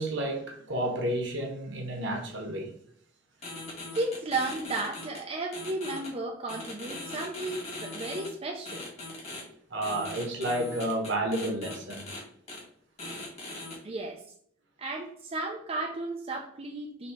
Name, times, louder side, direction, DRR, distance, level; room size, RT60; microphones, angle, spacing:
voice 1, 0.0-2.7 9.7-12.1, right 1 dB, 65° right, 1.1 m, -31 dB
sound 1, 3.4-5.2 5.5-6.1 6.5-8.3 8.6-9.4 9.8-12.2 12.5-12.6 13.0-13.7, left 2 dB, 35° left, 1.9 m, -40 dB
voice 2, 3.9-8.8 13.8-14.2 14.8-17.1, right 2 dB, 30° right, 0.5 m, -34 dB
4.2 x 2.8 x 4.4 m
head